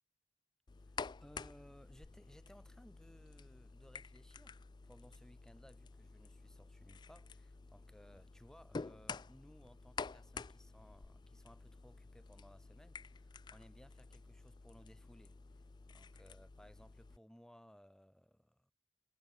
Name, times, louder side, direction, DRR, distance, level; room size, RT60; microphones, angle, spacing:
sound 1, 0.7-17.2, left 4 dB, 25° left, 0.3 m, -50 dB
voice 1, 0.8-15.3 15.9-18.7, equal, 5° left, 0.8 m, -62 dB
head